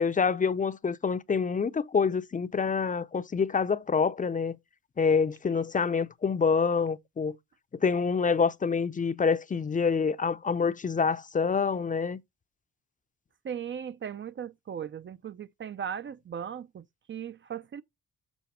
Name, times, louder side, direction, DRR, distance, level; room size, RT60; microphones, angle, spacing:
voice 1, 0.0-4.6 5.0-7.3 7.7-12.2, left 5 dB, 25° left, 0.6 m, -26 dB
voice 2, 13.4-17.8, right 8 dB, 40° right, 0.6 m, -38 dB
7.2 x 5.1 x 4.3 m
cardioid pair, 90°, 30 cm